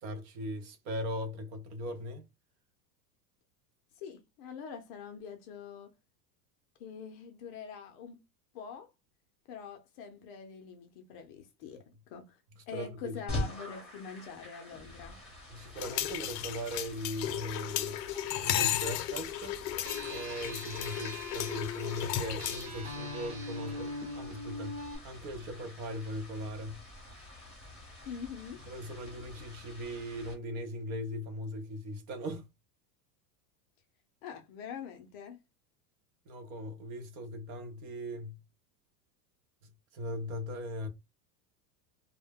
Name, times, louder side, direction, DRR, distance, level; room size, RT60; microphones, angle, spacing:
voice 1, 0.0-2.2 12.7-13.5 15.5-18.1 18.4-19.5 20.1-24.8 25.0-26.8 28.7-32.4 36.3-38.4 39.9-40.9, equal, 60° right, 0.8 m, -39 dB
voice 2, 4.0-5.9 6.8-8.2 8.5-8.9 9.5-12.4 12.7-15.2 28.0-28.6 34.2-35.4, left 7 dB, 40° left, 0.4 m, -44 dB
sound 1, 13.3-30.3, left 1 dB, ahead, 0.8 m, -46 dB
sound 2, 15.8-22.8, left 11 dB, 85° left, 0.6 m, -35 dB
sound 3, 19.8-25.0, left 1 dB, 30° right, 0.9 m, -41 dB
2.1 x 2.1 x 3.4 m
supercardioid pair, 155°, 48 cm